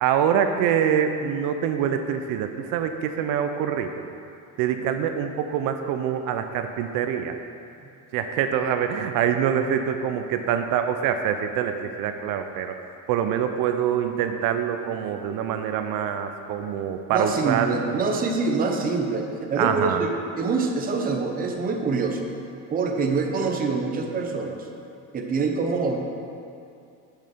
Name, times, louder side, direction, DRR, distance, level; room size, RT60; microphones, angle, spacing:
voice 1, 0.0-3.9 4.6-7.4 8.1-12.7 13.1-18.0 19.6-20.1, right 8 dB, 75° right, 7 dB, 0.6 m, -25 dB
voice 2, 17.1-20.1 20.4-22.3 22.7-24.7 25.1-26.0, right 4 dB, 25° right, 3 dB, 0.6 m, -25 dB
6.5 x 6.4 x 5.1 m, 2.5 s
cardioid pair, 155°, 33 cm